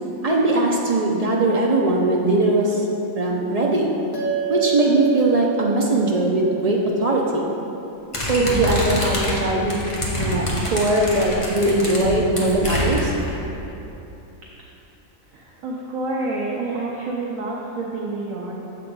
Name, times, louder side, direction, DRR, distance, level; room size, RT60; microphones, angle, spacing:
voice 1, 0.2-2.9 3.2-3.9 4.5-7.4 8.2-9.8 10.2-13.1, right 2 dB, 55° right, -2 dB, 0.4 m, -20 dB
sound 1, 4.1-8.8, right 6 dB, 90° left, 1.5 m, -30 dB
sound 2, 8.1-13.3, left 1 dB, 25° left, 1.0 m, -26 dB
voice 2, 15.3-18.5, right 2 dB, 75° right, -4 dB, 1.1 m, -28 dB
6.9 x 4.5 x 5.2 m, 3.0 s
omnidirectional pair, 1.4 m